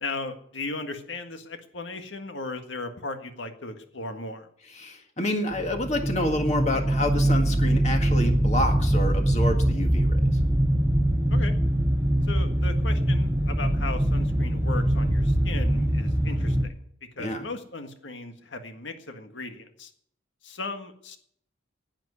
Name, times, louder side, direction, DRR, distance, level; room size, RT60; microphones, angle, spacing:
voice 1, 0.0-4.5 11.3-11.5 12.3-16.7 17.2-19.9 20.4-21.2, left 3 dB, 75° left, 7 dB, 1.7 m, -36 dB
voice 2, 4.8-10.2 17.2-17.4, left 1 dB, 35° left, 4 dB, 1.8 m, -28 dB
sound 1, 5.5-16.6, right 1 dB, 10° right, 0.9 m, -23 dB
10.5 x 9.1 x 9.6 m, 0.66 s
head